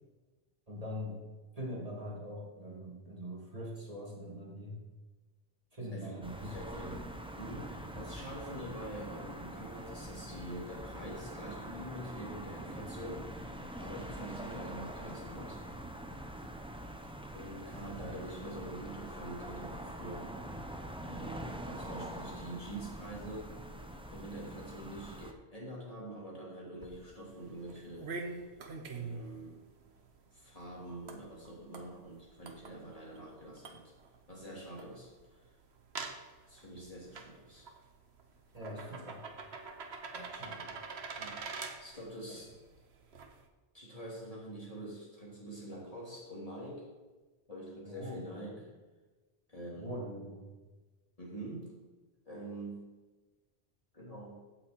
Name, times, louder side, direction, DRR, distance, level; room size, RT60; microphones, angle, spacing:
voice 1, 0.7-1.2 1.5-4.8 5.7-6.7 18.0-18.2 22.0-22.1 38.5-39.2 40.1-40.8 42.3-42.4 47.8-48.7 49.8-50.5, equal, 35° right, -3 dB, 2.2 m, -43 dB
voice 2, 5.9-7.0 7.4-13.5 13.8-15.6 17.3-20.4 21.0-23.6 24.1-28.1 28.9-29.6 30.3-33.9 34.3-35.5 36.5-37.7 41.2-41.4 41.8-42.5 43.7-46.9 47.5-48.5 49.5-50.0 51.2-51.7 52.2-52.9 53.9-54.4, right 1 dB, 35° left, -5 dB, 3.3 m, -45 dB
sound 1, 6.2-25.3, right 1 dB, 5° right, 0.6 m, -44 dB
sound 2, 26.8-43.5, right 4 dB, 85° right, 1.3 m, -47 dB
16.0 x 6.3 x 4.6 m, 1.2 s
omnidirectional pair, 1.1 m